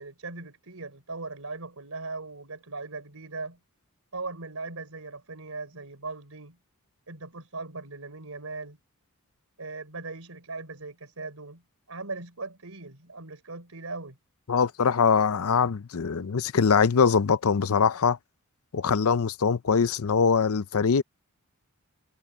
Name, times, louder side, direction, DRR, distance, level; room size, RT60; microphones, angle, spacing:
voice 1, 0.0-3.6 4.1-6.6 7.1-8.8 9.6-11.6 11.9-14.2, right 3 dB, 70° right, 4.1 m, -39 dB
voice 2, 14.5-18.2 18.7-21.0, left 6 dB, 70° left, 0.6 m, -23 dB
head